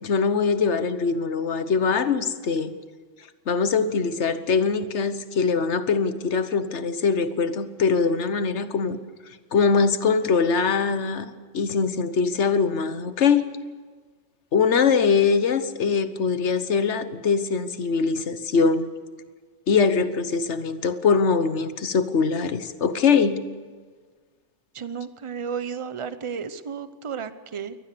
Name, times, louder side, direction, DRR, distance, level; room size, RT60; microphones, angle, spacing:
voice 1, 0.0-2.8 3.5-9.0 9.5-13.5 14.5-18.9 19.7-23.4, left 5 dB, 60° left, 12 dB, 1.4 m, -22 dB
voice 2, 24.7-27.8, right 6 dB, 30° right, 12 dB, 0.7 m, -33 dB
23.0 x 18.5 x 6.9 m, 1.5 s
omnidirectional pair, 1.4 m